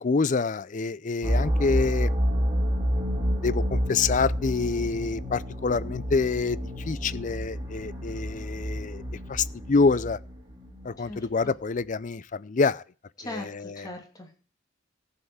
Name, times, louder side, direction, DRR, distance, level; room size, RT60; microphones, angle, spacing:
voice 1, 0.0-2.1 3.0-6.6 6.9-9.0 9.3-10.2 10.8-12.8 13.2-13.9, left 4 dB, 40° left, 0.5 m, -27 dB
sound 1, 1.2-11.1, equal, 20° right, 2.5 m, -29 dB
voice 2, 11.0-11.5 13.2-14.4, left 2 dB, 20° left, 2.9 m, -40 dB
14.5 x 5.7 x 8.0 m
head